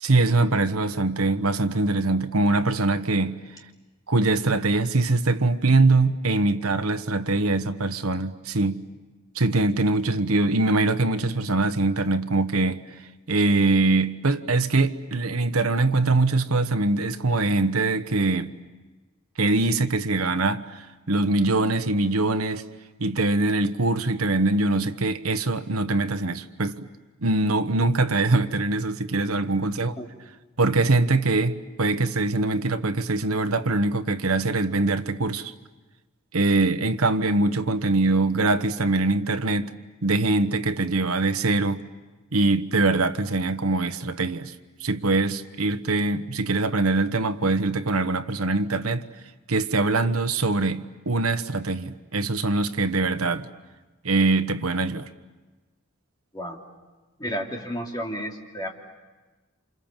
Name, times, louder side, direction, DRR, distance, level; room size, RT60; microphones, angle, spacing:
voice 1, 0.0-3.4 4.1-8.8 9.3-12.8 13.3-18.5 19.4-22.6 23.0-26.9 27.2-29.9 30.6-35.5 36.3-39.7 40.0-41.8 42.3-44.5 44.8-49.0 49.5-53.5 54.0-55.1, right 2 dB, 85° right, 1.2 m, -23 dB
voice 2, 57.2-58.7, equal, 20° left, 2.8 m, -32 dB
29.0 x 27.5 x 7.4 m
head